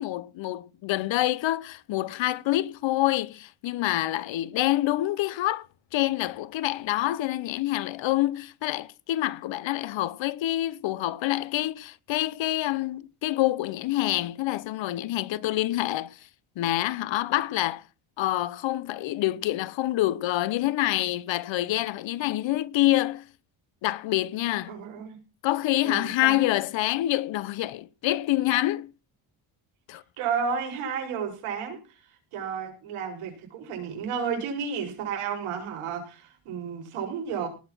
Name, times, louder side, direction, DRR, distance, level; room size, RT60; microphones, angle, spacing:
voice 1, 0.0-5.7 5.9-16.3 16.6-17.8 18.2-23.2 23.8-24.7 25.4-28.9 29.9-30.0, left 15 dB, 65° left, 0.9 m, -27 dB
voice 2, 24.7-25.2 25.8-26.4 30.2-31.8 32.3-37.5, right 6 dB, 80° right, 7.3 m, -32 dB
19.0 x 6.7 x 6.1 m
cardioid pair, 125°, 49 cm